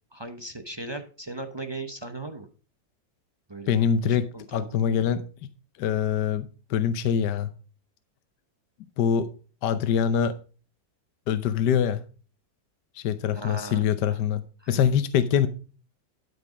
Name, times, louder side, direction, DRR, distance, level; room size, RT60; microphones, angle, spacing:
voice 1, 0.1-2.5 3.5-3.7 4.1-4.7 13.3-14.2 14.6-14.8, right 2 dB, 25° right, 0.5 m, -38 dB
voice 2, 3.7-5.2 5.8-7.5 9.0-9.3 9.6-10.3 11.3-12.0 12.9-14.4 14.7-15.5, left 8 dB, 70° left, 1.3 m, -24 dB
12.0 x 5.4 x 5.0 m
omnidirectional pair, 1.9 m